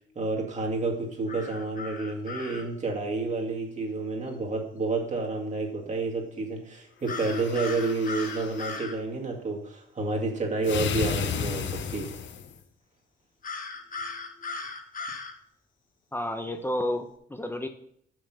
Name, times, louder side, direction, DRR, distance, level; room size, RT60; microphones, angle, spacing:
voice 1, 0.2-12.1, right 3 dB, 35° right, 0 dB, 2.3 m, -30 dB
sound 1, 1.3-2.6 7.1-9.0 13.4-15.3, left 4 dB, 45° left, 1.3 m, -37 dB
sound 2, 7.0-8.8 10.6-12.6, left 7 dB, 70° left, 1.0 m, -33 dB
voice 2, 16.1-17.7, left 1 dB, 10° left, 7 dB, 0.9 m, -31 dB
6.5 x 6.5 x 6.2 m, 0.67 s
cardioid pair, 90°, 20 cm